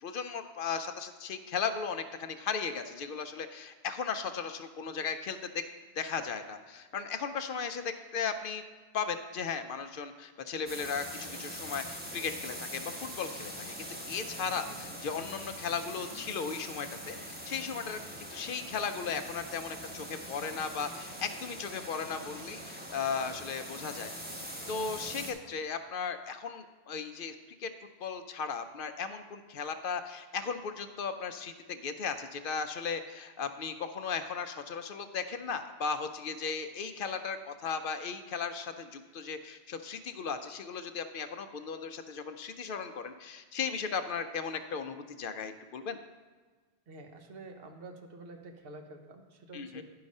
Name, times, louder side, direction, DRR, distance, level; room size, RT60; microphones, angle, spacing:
voice 1, 0.0-5.6 6.0-8.6 8.9-13.7 14.1-18.0 18.3-24.1 24.7-27.7 28.0-46.0 49.5-49.8, left 6 dB, 60° left, 9 dB, 0.6 m, -36 dB
sound 1, 10.7-25.3, equal, 10° right, 1.0 m, -43 dB
voice 2, 46.9-49.8, right 2 dB, 65° right, 4 dB, 1.1 m, -48 dB
10.0 x 4.8 x 5.3 m, 1.4 s
omnidirectional pair, 1.1 m